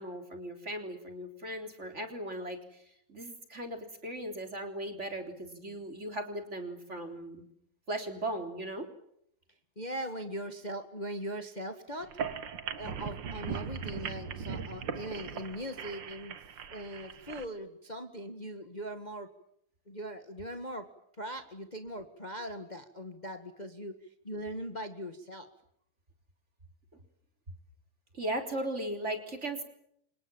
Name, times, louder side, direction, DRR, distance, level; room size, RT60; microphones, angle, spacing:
voice 1, 0.0-2.8 3.1-7.5 7.9-8.9 28.1-29.6, right 1 dB, 20° right, 5 dB, 3.7 m, -37 dB
voice 2, 9.7-12.1 12.8-16.4 16.7-19.3 19.9-20.9 21.2-25.5, equal, 35° left, 7 dB, 0.6 m, -40 dB
sound 1, 12.0-17.4, right 6 dB, 55° right, 1.2 m, -39 dB
29.5 x 26.0 x 7.4 m, 0.74 s
omnidirectional pair, 4.1 m